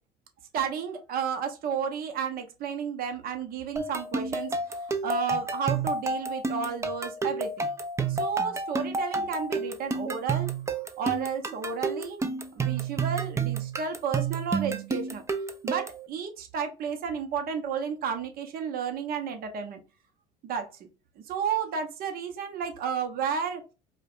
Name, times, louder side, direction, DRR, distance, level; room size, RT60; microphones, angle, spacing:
voice 1, 0.5-7.7 8.1-10.5 11.0-12.2 12.5-15.2 15.6-19.8 20.4-20.9 21.3-23.6, right 7 dB, 50° right, 5 dB, 0.9 m, -32 dB
sound 1, 3.8-16.1, right 4 dB, 15° right, 0.5 m, -30 dB
4.8 x 2.2 x 2.4 m, 0.30 s
supercardioid pair, 95°, 20 cm